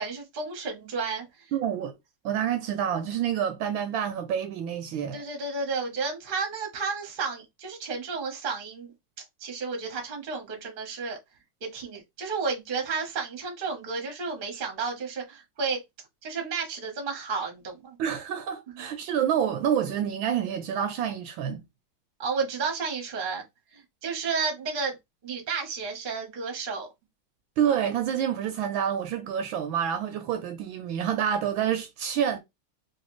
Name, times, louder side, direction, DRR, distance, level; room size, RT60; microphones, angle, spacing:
voice 1, 0.0-1.5 5.1-8.9 9.4-11.2 11.6-15.8 16.2-18.0 18.8-18.9 22.2-23.4 23.7-25.0 25.2-26.9, right 4 dB, 35° right, 0.8 m, -32 dB
voice 2, 1.5-1.9 2.2-5.2 18.0-21.6 27.6-32.4, right 9 dB, 75° right, 1.3 m, -28 dB
3.2 x 3.0 x 3.0 m
omnidirectional pair, 2.4 m